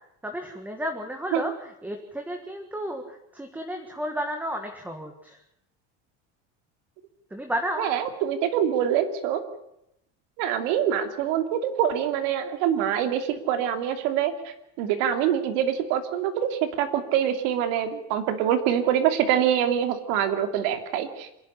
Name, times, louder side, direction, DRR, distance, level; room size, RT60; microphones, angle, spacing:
voice 1, 0.2-5.4 7.3-7.9, equal, 5° right, 4 dB, 1.6 m, -32 dB
voice 2, 7.8-9.4 10.4-21.3, right 9 dB, 75° right, 7 dB, 2.9 m, -25 dB
26.5 x 11.0 x 9.9 m, 0.80 s
cardioid pair, 165°, 34 cm